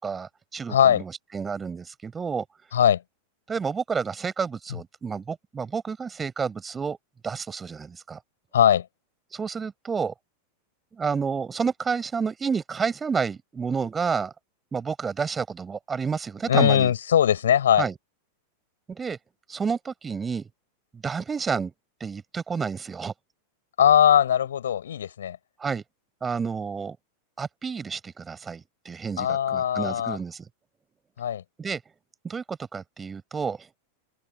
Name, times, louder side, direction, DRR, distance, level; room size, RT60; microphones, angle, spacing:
voice 1, 0.0-2.4 3.5-7.0 7.2-8.2 9.3-10.1 10.9-14.3 14.7-16.9 17.8-17.9 18.9-19.2 19.5-20.5 20.9-21.7 22.0-23.1 25.6-25.8 26.2-27.0 27.4-30.5 31.6-31.8 32.2-33.7, right 5 dB, 15° right, 6.5 m, -30 dB
voice 2, 0.7-1.0 2.7-3.0 8.5-8.9 16.5-17.9 23.8-25.4 29.2-30.2 31.2-31.4, left 9 dB, 65° left, 4.5 m, -20 dB
open air
figure-of-eight pair, 90°, 0 cm